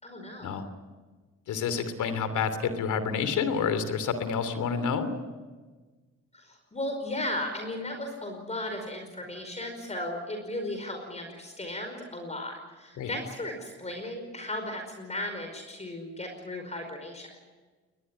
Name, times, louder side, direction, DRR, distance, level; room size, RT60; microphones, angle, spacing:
voice 1, 0.0-0.6 6.3-17.3, left 1 dB, 20° left, 4 dB, 5.1 m, -36 dB
voice 2, 1.5-5.1 13.0-13.1, left 6 dB, 75° left, 10 dB, 3.0 m, -29 dB
22.0 x 20.5 x 10.0 m, 1.3 s
cardioid pair, 90°, 30 cm